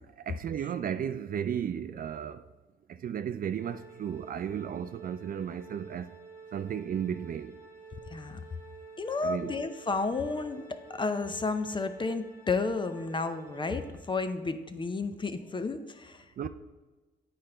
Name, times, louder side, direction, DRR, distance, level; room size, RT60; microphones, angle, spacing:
voice 1, 0.3-2.5 2.9-6.2 6.5-7.6 9.2-9.5 16.4-16.5, right 8 dB, 45° right, 0.4 m, -34 dB
Organ, 3.6-14.5, right 4 dB, 15° right, 1.3 m, -50 dB
voice 2, 8.1-8.4 9.0-16.2, left 3 dB, 25° left, 0.6 m, -32 dB
9.1 x 4.3 x 3.8 m
cardioid pair, 90°, 20 cm